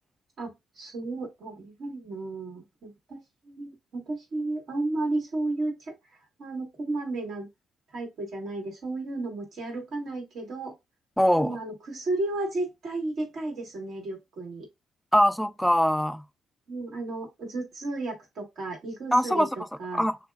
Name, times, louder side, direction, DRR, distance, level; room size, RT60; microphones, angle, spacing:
voice 1, 0.4-7.5 7.9-10.7 11.4-14.7 16.7-20.0, right 2 dB, 65° right, 1.6 m, -33 dB
voice 2, 11.2-11.6 15.1-16.2 19.1-19.5 19.9-20.2, equal, 5° left, 0.4 m, -22 dB
6.6 x 2.2 x 2.3 m
cardioid pair, 90°, 0 cm